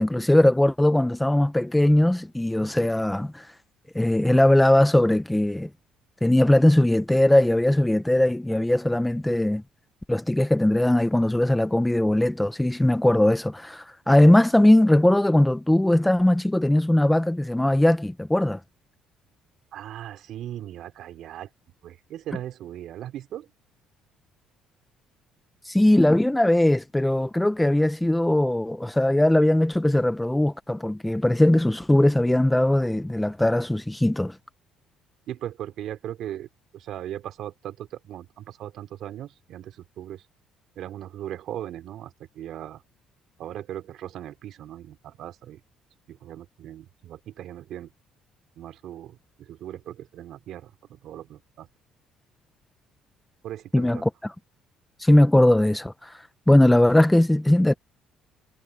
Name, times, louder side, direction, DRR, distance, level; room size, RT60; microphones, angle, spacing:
voice 1, 0.0-3.5 3.9-5.7 6.2-9.6 10.1-18.6 25.6-34.3 53.7-54.3 55.0-57.7, left 1 dB, 5° left, 0.8 m, -20 dB
voice 2, 19.7-21.5 21.8-23.5 35.3-36.5 36.7-40.2 40.8-42.8 43.4-45.6 46.1-47.9 48.6-51.7 53.4-54.0, right 12 dB, 60° right, 3.9 m, -38 dB
cardioid pair, 150°, 0 cm